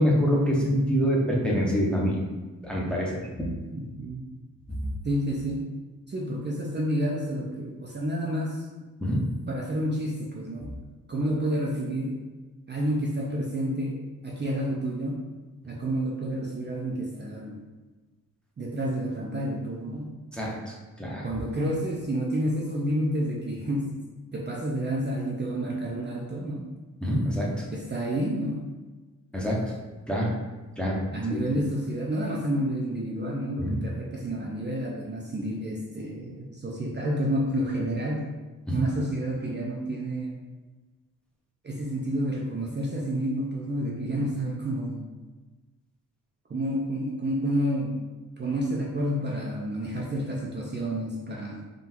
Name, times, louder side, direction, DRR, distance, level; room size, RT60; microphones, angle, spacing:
voice 1, 0.0-2.2 2.6-3.5 9.0-9.2 20.3-21.3 27.0-27.7 29.3-29.6 30.1-30.3 30.8-31.0 31.3-31.4 33.6-33.8 38.7-38.8, equal, 5° left, -4 dB, 0.7 m, -25 dB
voice 2, 3.7-4.3 5.0-5.7 6.1-8.7 9.5-10.7 11.1-12.2 12.7-15.2 15.6-17.6 18.6-20.1 21.2-24.0 24.3-26.7 27.7-28.6 31.1-38.3 38.7-40.3 41.6-45.0 46.5-48.0 48.4-51.6, right 1 dB, 30° right, -3 dB, 0.5 m, -29 dB
3.8 x 2.4 x 4.3 m, 1.2 s
wide cardioid pair, 130°, 34 cm